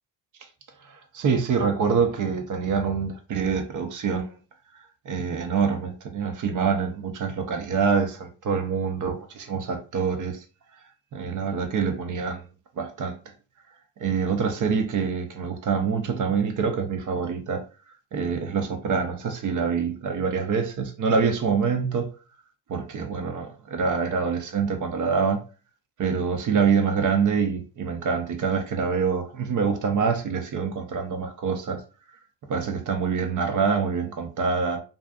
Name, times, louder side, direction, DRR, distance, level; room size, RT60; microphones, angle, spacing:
voice 1, 0.9-4.4 5.1-10.4 11.1-12.5 12.8-13.2 14.0-17.6 18.1-22.1 22.7-23.5 23.7-25.4 26.0-31.8 32.5-34.8, right 5 dB, 40° right, 0.6 m, -25 dB
2.4 x 2.4 x 2.3 m
supercardioid pair, 80°, 50 cm